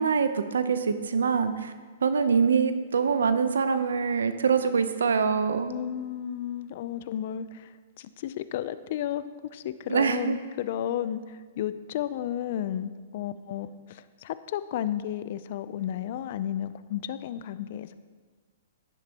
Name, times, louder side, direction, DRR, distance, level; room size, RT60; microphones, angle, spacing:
voice 1, 0.0-1.7 2.0-5.8 9.9-10.3, right 5 dB, 85° right, 10 dB, 0.7 m, -24 dB
voice 2, 5.7-7.7 8.0-9.2 9.5-18.0, left 10 dB, 55° left, 14 dB, 0.5 m, -33 dB
11.0 x 10.5 x 3.0 m, 1.5 s
hypercardioid pair, 130°, 0 cm